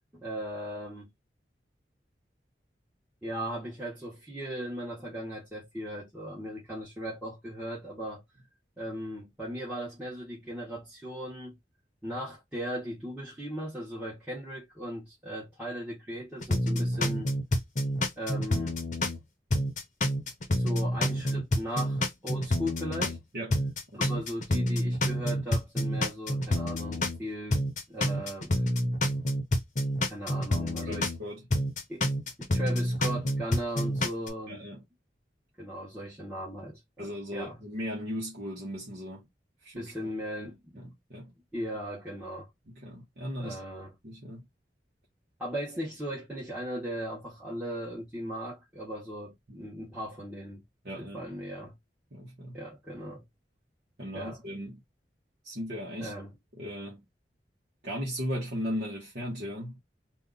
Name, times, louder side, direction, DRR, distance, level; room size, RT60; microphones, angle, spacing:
voice 1, 0.1-1.1 3.2-8.2 8.8-11.6 12.0-17.3 18.2-18.8 20.5-23.2 23.9-28.6 30.0-31.1 31.9-32.0 32.4-34.7 35.6-37.6 39.8-40.9 41.5-42.5 43.4-43.9 45.4-50.6 51.0-51.8 52.5-53.2 54.1-54.4 56.0-56.3, equal, 10° right, 1.1 m, -38 dB
sound 1, 16.4-19.2 19.5-23.2 23.5-27.2 27.5-31.2 31.5-34.3, left 1 dB, 40° left, 0.8 m, -28 dB
voice 2, 30.8-31.4 34.5-34.8 37.0-39.2 39.6-40.1 40.8-41.3 42.7-43.6 44.0-44.4 49.5-49.6 50.8-51.2 52.1-52.6 54.0-54.8 55.4-56.1 56.6-57.0 57.8-59.8, equal, 60° right, 1.0 m, -37 dB
2.7 x 2.4 x 3.6 m
head